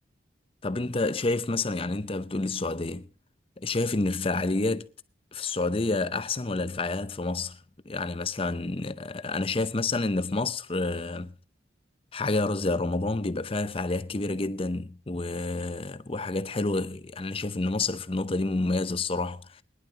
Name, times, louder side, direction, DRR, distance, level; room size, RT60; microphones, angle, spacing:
voice 1, 0.6-3.1 3.6-4.9 5.3-7.6 7.9-11.3 12.1-19.6, left 2 dB, 30° left, 0.7 m, -29 dB
22.5 x 11.0 x 2.8 m
head